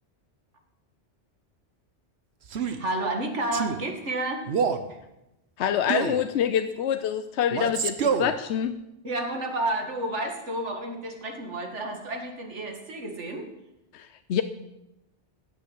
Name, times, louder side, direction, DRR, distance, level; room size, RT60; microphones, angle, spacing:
Male speech man speaking, 2.5-2.8 3.5-3.8 4.5-4.9 5.9-6.2 7.5-8.3, right 6 dB, 70° right, 1.2 m, -26 dB
voice 1, 2.5-4.5 4.9-5.0 9.0-13.5, right 1 dB, 85° right, 3 dB, 2.3 m, -31 dB
voice 2, 5.6-8.8 13.9-14.4, left 9 dB, 75° left, 10 dB, 0.9 m, -26 dB
15.5 x 6.3 x 8.2 m, 0.91 s
omnidirectional pair, 1.2 m